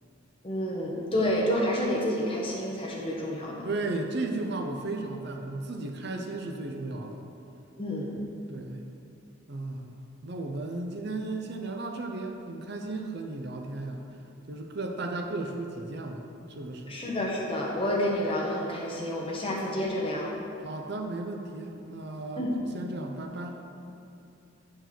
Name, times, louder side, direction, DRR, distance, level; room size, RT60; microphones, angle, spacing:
voice 1, 0.4-3.6 7.8-8.1 16.9-20.3 22.4-22.5, left 1 dB, 25° left, -3 dB, 1.2 m, -29 dB
voice 2, 3.6-7.2 8.5-8.9 9.5-14.0 14.5-17.0 20.6-22.5 22.7-23.6, right 2 dB, 50° right, 3 dB, 0.6 m, -35 dB
8.6 x 4.6 x 6.0 m, 2.8 s
head